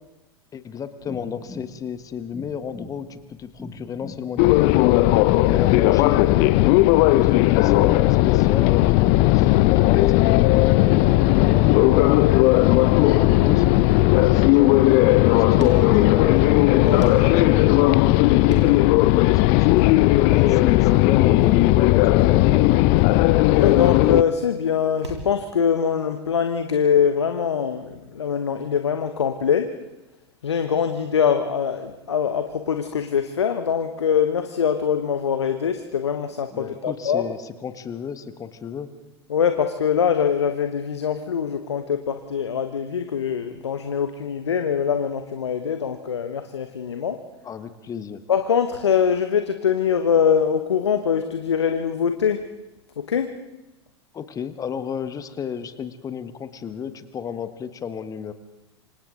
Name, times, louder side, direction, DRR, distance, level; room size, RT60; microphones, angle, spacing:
voice 1, 0.5-5.0 5.5-6.6 7.0-11.0 11.4-12.2 12.5-16.6 17.2-19.8 20.2-23.1 36.5-38.9 47.4-48.2 54.1-58.3, left 7 dB, 25° left, 11 dB, 1.5 m, -33 dB
sound 1, 1.0-10.1, left 2 dB, 10° left, 2.3 m, -41 dB
sound 2, 4.4-24.2, left 18 dB, 45° left, 0.7 m, -16 dB
sound 3, 15.5-25.3, right 2 dB, 90° right, 3.6 m, -40 dB
voice 2, 23.6-29.7 30.4-37.3 39.3-47.2 48.3-52.4 53.0-53.3, left 7 dB, 75° left, 7 dB, 1.2 m, -23 dB
27.5 x 25.5 x 3.8 m, 1.0 s
figure-of-eight pair, 90°, 15 cm